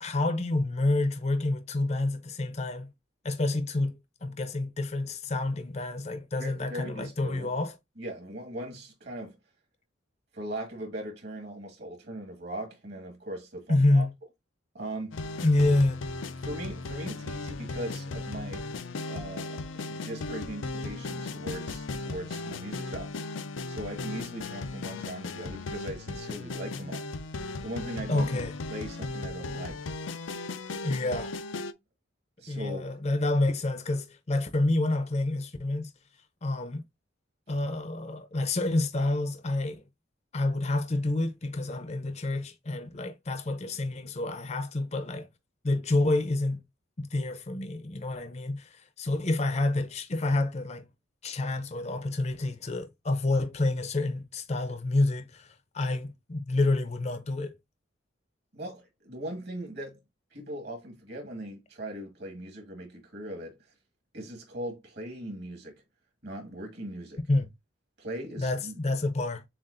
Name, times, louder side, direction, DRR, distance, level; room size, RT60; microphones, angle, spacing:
voice 1, 0.0-2.9 3.2-7.7 13.7-14.1 15.4-16.0 28.1-28.5 30.8-31.3 32.5-35.9 36.4-36.8 37.5-39.8 40.3-45.3 45.6-46.6 47.0-50.8 51.2-55.5 55.7-57.5 67.3-67.5 68.4-69.4, left 2 dB, 35° left, 0.6 m, -28 dB
voice 2, 6.4-7.6 8.0-9.4 10.3-14.1 14.7-15.2 16.3-18.7 19.1-23.2 23.7-27.1 27.6-29.9 32.4-32.8 58.5-60.0 60.3-63.6 64.1-65.8 66.2-67.2 68.0-68.8, right 1 dB, 55° right, 1.9 m, -39 dB
sound 1, 15.1-31.7, left 3 dB, 85° left, 0.5 m, -36 dB
7.3 x 2.5 x 2.6 m
head